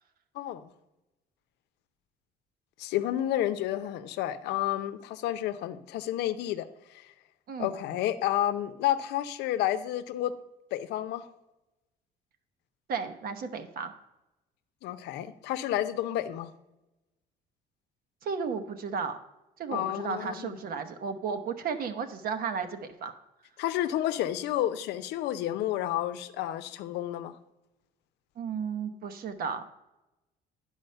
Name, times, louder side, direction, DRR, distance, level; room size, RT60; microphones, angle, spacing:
voice 1, 0.3-0.7 2.8-7.1 7.6-10.3 10.7-11.3 14.8-16.5 19.7-20.6 23.6-27.3, left 12 dB, 85° left, 12 dB, 0.7 m, -30 dB
voice 2, 12.9-13.9 18.2-19.2 19.6-23.1 28.4-29.7, right 6 dB, 60° right, 8 dB, 1.0 m, -34 dB
10.5 x 4.9 x 6.7 m, 0.96 s
cardioid pair, 110°, 17 cm